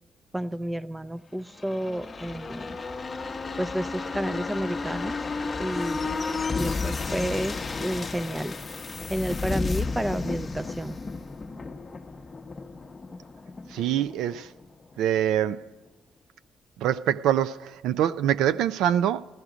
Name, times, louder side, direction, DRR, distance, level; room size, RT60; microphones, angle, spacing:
voice 1, 0.3-2.8 3.6-5.2 5.6-6.1 6.5-8.5 9.1-11.0, right 1 dB, 10° right, 0.4 m, -31 dB
sound 1, 1.5-15.0 15.3-15.4, left 4 dB, 30° left, 0.8 m, -33 dB
voice 2, 13.7-14.5 15.0-15.6 16.8-19.2, right 11 dB, 90° right, 0.4 m, -24 dB
14.5 x 13.5 x 5.0 m
cardioid pair, 90°, 0 cm